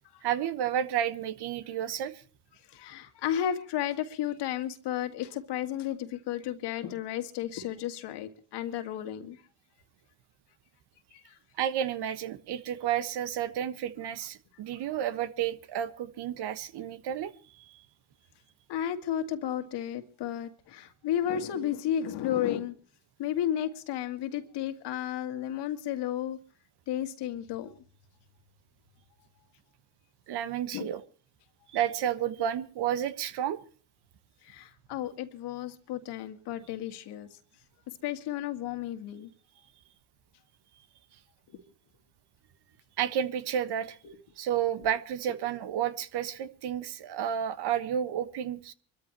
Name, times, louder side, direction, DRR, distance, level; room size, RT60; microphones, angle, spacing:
voice 1, 0.2-2.1 11.6-17.3 17.6-17.7 30.3-31.0 31.7-33.6 43.0-44.0 44.4-48.7, right 10 dB, 65° right, 1.4 m, -31 dB
voice 2, 2.7-9.4 11.1-11.4 18.7-22.7 23.2-26.4 26.9-27.8 30.7-30.9 34.4-37.4 38.0-39.3 41.5-41.6 44.0-44.2, left 10 dB, 70° left, 2.2 m, -33 dB
24.5 x 13.5 x 3.0 m
supercardioid pair, 75°, 42 cm